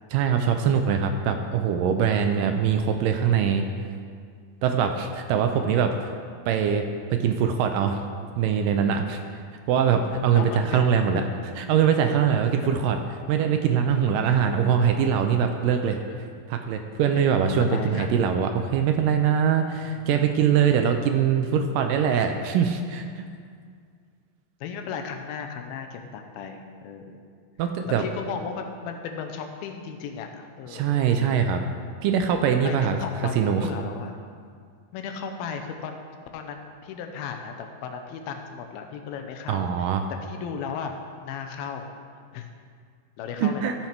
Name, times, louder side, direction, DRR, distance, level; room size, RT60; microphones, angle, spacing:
voice 1, 0.1-3.7 4.6-6.0 6.5-6.8 7.1-8.0 8.4-9.2 9.7-11.2 11.6-13.0 13.3-16.0 16.5-23.3 27.6-28.0 30.7-31.6 32.0-33.0 33.4-33.7 39.5-40.0 43.4-43.7, right 7 dB, 80° right, 5 dB, 2.1 m, -22 dB
voice 2, 10.3-11.3 12.2-12.3 12.5-12.8 15.8-16.2 17.1-17.2 17.6-18.3 19.9-20.1 20.8-20.9 24.6-27.2 27.6-27.7 28.0-31.1 32.6-34.3 34.9-36.0 36.3-39.9 40.2-41.0 41.2-41.9 42.3-42.5 43.2-43.8, left 6 dB, 90° left, 5 dB, 2.6 m, -36 dB
13.5 x 5.8 x 4.5 m, 2.1 s
omnidirectional pair, 4.2 m